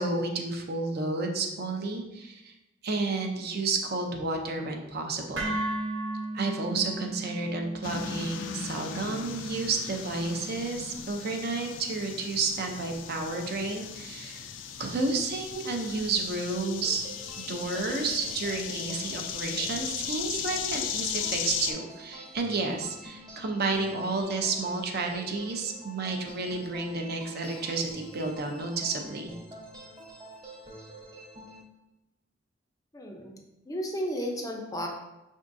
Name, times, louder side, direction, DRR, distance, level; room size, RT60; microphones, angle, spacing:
voice 1, 0.0-2.5 2.8-5.5 6.3-14.4 14.8-17.0 17.4-29.3, right 3 dB, 55° right, 3 dB, 0.6 m, -31 dB
sound 1, 5.4-13.5, right 2 dB, 85° right, 1.0 m, -38 dB
sound 2, 7.8-21.7, left 8 dB, 75° left, 0.4 m, -37 dB
sound 3, 16.8-31.6, right 1 dB, 20° right, 0.9 m, -47 dB
voice 2, 32.9-34.9, equal, 20° left, 2 dB, 0.5 m, -34 dB
5.3 x 3.6 x 2.6 m, 0.95 s
head